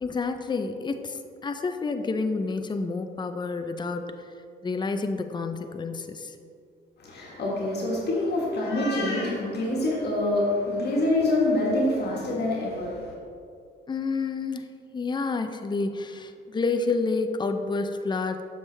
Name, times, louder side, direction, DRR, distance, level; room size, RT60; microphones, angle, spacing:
voice 1, 0.0-4.3 4.6-6.4 13.9-18.4, left 4 dB, 20° left, 7 dB, 0.5 m, -29 dB
voice 2, 7.0-13.1, left 1 dB, 55° left, -4 dB, 1.7 m, -26 dB
7.2 x 6.3 x 3.3 m, 2.4 s
cardioid pair, 90°, 20 cm